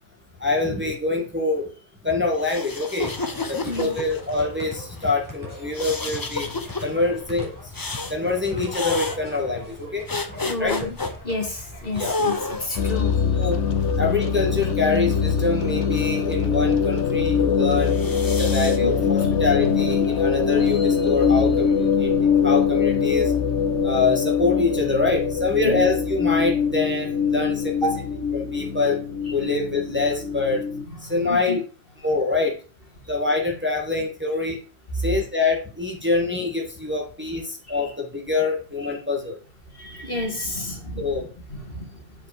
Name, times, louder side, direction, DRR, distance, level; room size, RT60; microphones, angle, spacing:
voice 1, 0.4-1.7 2.0-3.1 3.5-6.5 6.8-7.5 8.1-10.0 10.6-10.7 11.9-12.2 13.4-13.6 14.0-17.9 18.4-22.1 22.4-23.3 23.8-27.9 28.3-29.0 29.3-30.6 31.0-31.6 32.0-32.5 33.1-34.6 35.0-39.4 41.0-41.3, left 3 dB, 10° right, -1 dB, 1.7 m, -25 dB
sound 1, 2.4-4.4 5.7-6.8 7.7-8.2 8.7-9.2 10.1-11.1 12.0-12.9 13.7-14.8 17.8-18.8, left 3 dB, 25° left, 0.6 m, -30 dB
sound 2, 3.0-12.8, left 2 dB, 5° left, 4.5 m, -40 dB
voice 2, 3.4-3.9 10.4-11.0 11.2-13.3 18.8-18.9 25.6-25.8 27.8-27.9 30.9-31.6 34.9-35.1 37.6-37.9 39.7-41.2 41.5-42.1, left 1 dB, 45° left, 1 dB, 2.1 m, -30 dB
sound 3, 12.8-30.8, left 6 dB, 65° left, 1.3 m, -22 dB
7.8 x 5.0 x 4.9 m, 0.36 s
omnidirectional pair, 1.3 m